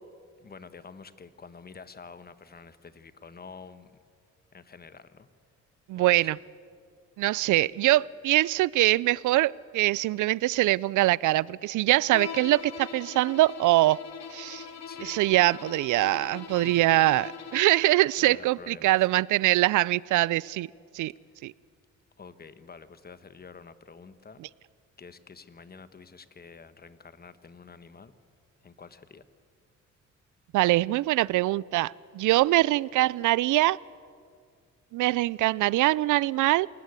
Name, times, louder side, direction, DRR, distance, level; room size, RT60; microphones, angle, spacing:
voice 1, 0.4-3.9 4.5-5.3 6.0-6.3 14.9-15.1 16.5-16.8 18.2-19.2 22.2-24.4 25.0-28.1 28.6-29.2, left 5 dB, 30° left, 12 dB, 1.4 m, -48 dB
voice 2, 5.9-6.4 7.2-14.0 14.3-14.7 15.0-20.7 20.9-21.1 21.4-21.5 30.5-33.8 34.9-36.7, right 17 dB, 80° right, 23 dB, 0.5 m, -23 dB
Bowed string instrument, 12.1-18.0, left 6 dB, 60° left, 2.0 m, -41 dB
28.0 x 19.5 x 8.3 m, 2.2 s
cardioid pair, 90°, 30 cm